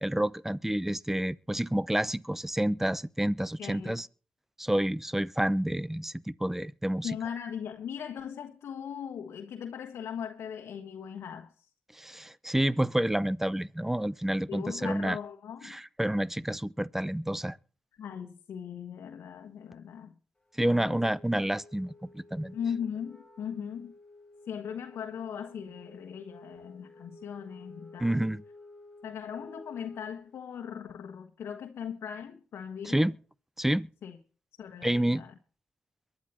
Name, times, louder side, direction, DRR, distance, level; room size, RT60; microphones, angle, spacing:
voice 1, 0.0-4.1 4.6-7.1 12.0-15.2 15.6-17.6 20.6-22.5 28.0-28.4 32.8-33.2 33.6-33.9 34.8-35.2, right 1 dB, 5° right, 0.7 m, -29 dB
voice 2, 3.6-4.0 7.0-11.5 14.5-15.8 18.0-20.1 20.6-21.0 22.5-23.9 24.5-28.3 29.0-33.1 34.0-34.2 34.6-35.3, left 8 dB, 80° left, 1.3 m, -39 dB
Wind instrument woodwind instrument, 20.6-30.4, left 2 dB, 15° left, 4.2 m, -52 dB
23.0 x 10.5 x 3.0 m
cardioid pair, 60°, 4 cm